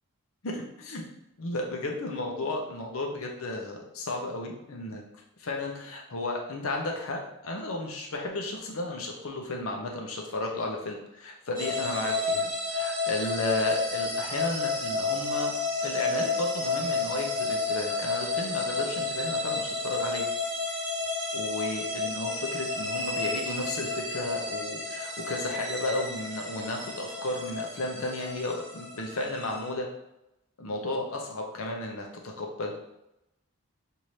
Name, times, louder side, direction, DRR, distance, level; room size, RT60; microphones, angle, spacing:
voice 1, 0.4-1.0 1.4-5.0 5.4-15.5 15.8-20.2 21.3-29.9 30.6-32.8, left 2 dB, 80° left, 1 dB, 0.8 m, -33 dB
sound 1, 11.5-29.7, left 3 dB, 40° right, 1.4 m, -31 dB
5.7 x 2.7 x 3.2 m, 0.86 s
head